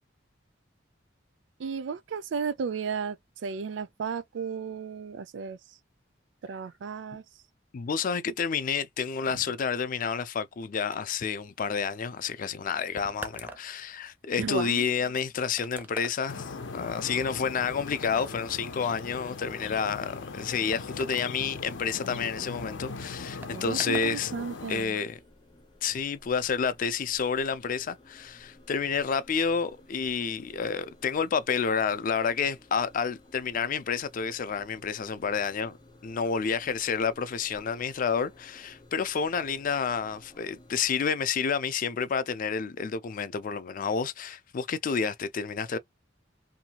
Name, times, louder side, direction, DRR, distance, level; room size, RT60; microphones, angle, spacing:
voice 1, 1.6-3.2 3.4-5.6 6.4-7.2 14.4-14.9 23.5-25.0, right 6 dB, 75° right, 0.4 m, -34 dB
voice 2, 7.7-24.3 24.7-25.2 25.8-35.8 36.0-45.8, left 6 dB, 45° left, 0.4 m, -29 dB
sound 1, 10.9-24.2 24.5-25.1, right 2 dB, 10° right, 0.4 m, -47 dB
sound 2, 16.3-24.9, left 4 dB, 85° left, 0.7 m, -40 dB
sound 3, 25.1-40.9, left 1 dB, 25° left, 0.8 m, -56 dB
2.7 x 2.2 x 2.8 m
head